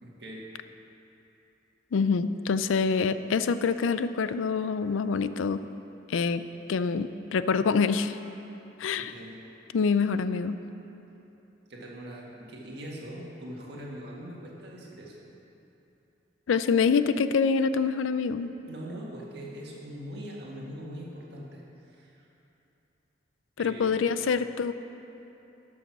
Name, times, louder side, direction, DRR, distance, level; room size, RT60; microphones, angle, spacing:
voice 1, 0.0-0.4 8.9-9.4 11.7-15.1 18.7-22.2 23.6-24.0, equal, 55° right, -4 dB, 1.8 m, -42 dB
voice 2, 1.9-5.6 6.1-6.4 6.7-8.2 8.8-9.1 9.7-10.6 16.5-18.5 23.6-24.7, left 5 dB, 85° left, 12 dB, 0.4 m, -26 dB
12.5 x 6.3 x 5.9 m, 2.9 s
head